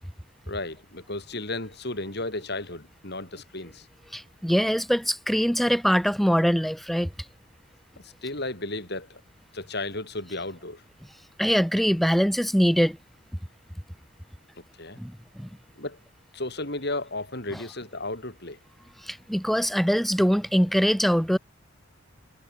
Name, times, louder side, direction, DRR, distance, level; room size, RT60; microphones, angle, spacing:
voice 1, 0.5-3.9 8.0-9.2 9.5-10.8 14.8-15.0 15.8-16.0 16.3-18.6, left 2 dB, 55° left, 7.6 m, -34 dB
voice 2, 4.1-7.1 11.4-13.0 15.0-15.1 15.4-15.5 19.1-21.4, equal, ahead, 1.9 m, -23 dB
head